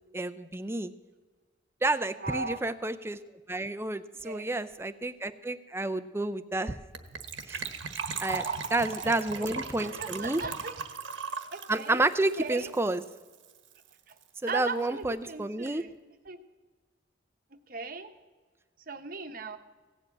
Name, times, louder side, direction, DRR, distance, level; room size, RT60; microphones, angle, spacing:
voice 1, 0.1-0.9 1.8-3.2 3.5-6.8 7.5-7.6 8.2-8.4 8.7-10.4 11.7-13.0 14.4-15.8, right 2 dB, 15° right, 12 dB, 0.5 m, -30 dB
voice 2, 2.2-2.6 4.2-4.5 8.4-8.6 9.0-9.5 9.8-10.7 11.5-12.1 12.4-12.7 14.1-14.2 14.5-15.9 16.3-16.4 17.7-18.1 18.9-19.6, right 4 dB, 45° right, 7 dB, 1.0 m, -38 dB
Gurgling / Trickle dribble / Fill (with liquid), 6.9-13.2 13.4-13.5 13.7-13.9 14.2-14.3, right 5 dB, 80° right, 1.2 m, -37 dB
16.5 x 7.7 x 8.4 m, 1.4 s
head